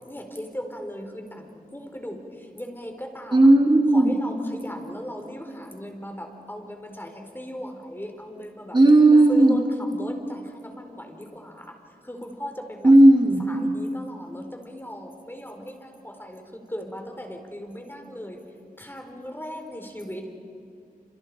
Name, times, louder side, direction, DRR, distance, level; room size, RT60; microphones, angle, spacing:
voice 1, 0.1-2.2 2.6-3.4 3.9-8.8 9.3-9.6 9.9-11.7 12.0-12.9 13.5-18.4 18.8-20.3, equal, 15° left, 3 dB, 4.4 m, -38 dB
voice 2, 3.3-4.2 8.7-9.6 12.8-13.4, right 1 dB, 30° right, 1 dB, 2.6 m, -14 dB
30.0 x 28.5 x 5.0 m, 2.5 s
wide cardioid pair, 60°, 15 cm